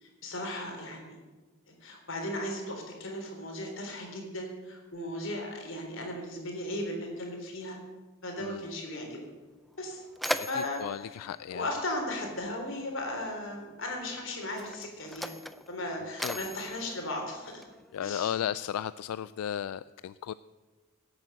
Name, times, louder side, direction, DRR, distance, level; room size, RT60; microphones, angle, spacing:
voice 1, 0.0-1.1 1.7-7.8 8.2-9.2 9.8-10.0 10.5-11.1 11.5-15.4 15.7-17.6 18.0-18.4, left 1 dB, 60° left, 2 dB, 3.5 m, -36 dB
Mechanisms, 9.2-9.3 9.7-12.4 13.4-13.6 14.4-18.0, equal, ahead, 0.4 m, -39 dB
voice 2, 10.4-11.7 16.2-16.4 17.9-20.3, left 9 dB, 90° left, 15 dB, 0.3 m, -35 dB
17.0 x 8.8 x 6.4 m, 1.3 s
head